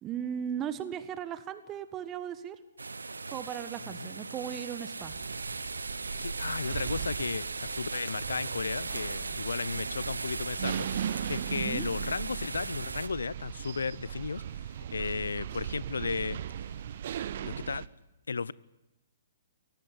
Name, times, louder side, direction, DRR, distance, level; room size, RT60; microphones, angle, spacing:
voice 1, 0.0-2.6 3.3-5.1 11.5-11.9, right 9 dB, 25° right, 12 dB, 1.6 m, -37 dB
sound 1, 2.8-13.1, right 3 dB, 80° right, 1.1 m, -38 dB
sound 2, 5.0-17.9, right 9 dB, 55° right, 1.1 m, -38 dB
voice 2, 6.2-14.4 14.9-16.4 17.4-17.9 18.3-18.5, left 5 dB, 75° left, 22 dB, 0.8 m, -34 dB
24.0 x 17.5 x 9.6 m, 0.94 s
figure-of-eight pair, 120°, 0 cm